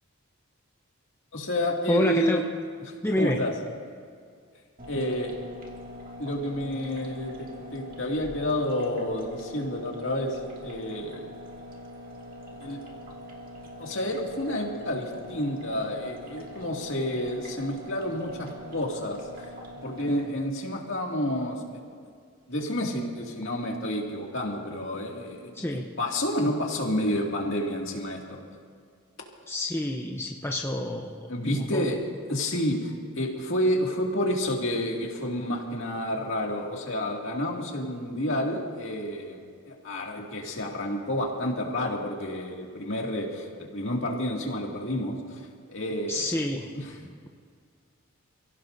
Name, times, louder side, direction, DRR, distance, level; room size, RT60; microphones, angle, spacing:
voice 1, 1.3-2.4 3.2-3.5 4.9-5.3 6.2-11.3 12.6-12.8 13.8-19.2 19.8-21.8 22.5-28.4 31.3-32.0 32.3-39.4 39.7-46.3 46.7-46.8, left 1 dB, 60° left, -1 dB, 2.3 m, -30 dB
voice 2, 1.9-2.4 3.0-3.4 25.5-25.9 29.5-31.3 31.5-31.8 46.1-46.8 47.0-47.3, left 1 dB, 10° left, 1 dB, 0.7 m, -28 dB
sound 1, 4.8-20.3, equal, 40° right, 2.2 m, -43 dB
29.0 x 16.0 x 2.7 m, 2.1 s
head